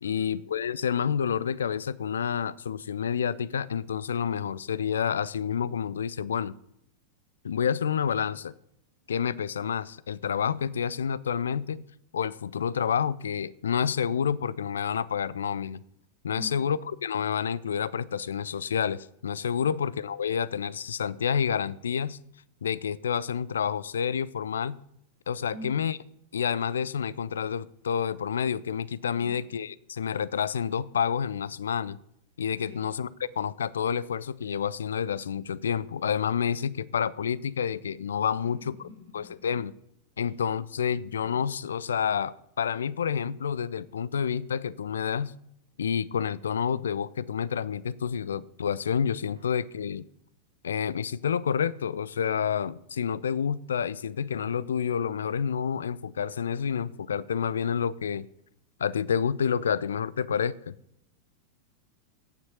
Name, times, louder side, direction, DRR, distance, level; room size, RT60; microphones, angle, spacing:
voice 1, 0.0-6.5 7.4-8.5 9.1-11.8 12.1-15.8 16.2-22.2 22.6-24.8 25.3-26.0 26.3-32.0 32.4-38.8 39.1-39.7 40.2-45.3 45.8-50.0 50.6-58.3 58.8-60.7, left 7 dB, 65° left, 0.4 m, -29 dB
voice 2, 16.3-16.7 19.6-19.8 25.5-25.8 29.1-29.3 32.6-32.9 38.3-39.4 40.2-40.3 49.3-49.5, left 1 dB, 85° right, 3.7 m, -46 dB
9.2 x 7.3 x 5.5 m
figure-of-eight pair, 90°, 0 cm